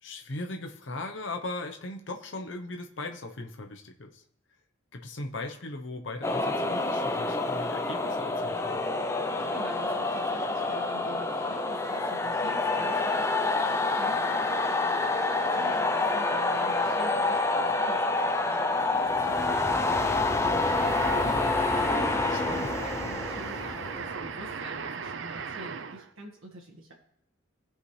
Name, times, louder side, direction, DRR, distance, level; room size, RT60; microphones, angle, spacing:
voice 1, 0.0-4.2 4.9-8.9 22.2-22.7, left 2 dB, 65° left, 4 dB, 0.8 m, -38 dB
sound 1, 6.2-24.8, left 3 dB, 15° left, 0.5 m, -27 dB
voice 2, 9.3-26.9, right 1 dB, 85° right, -2 dB, 1.6 m, -46 dB
sound 2, 20.6-26.1, right 6 dB, 65° right, 0.5 m, -37 dB
17.0 x 5.7 x 3.2 m, 0.72 s
head